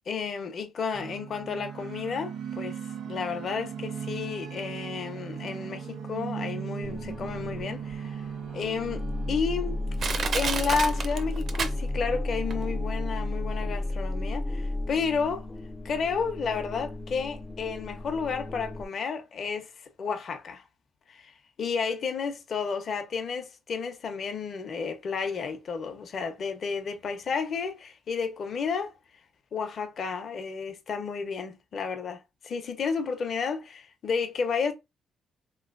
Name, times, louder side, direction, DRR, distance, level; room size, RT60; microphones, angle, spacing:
voice 1, 0.0-2.8 3.1-8.2 8.5-9.8 10.3-15.5 15.8-19.7 20.0-20.6 21.1-21.3 21.6-28.9 29.5-34.7, left 5 dB, 55° left, 0.8 m, -32 dB
sound 1, 0.9-13.9, right 7 dB, 75° right, 0.9 m, -39 dB
sound 2, 6.8-18.9, left 2 dB, 15° left, 0.4 m, -33 dB
Crushing, 7.9-8.0 8.6-8.7 9.4-9.5 10.0-12.2 12.5-12.6, right 5 dB, 55° right, 0.5 m, -30 dB
3.1 x 3.1 x 2.5 m
cardioid pair, 90°, 0 cm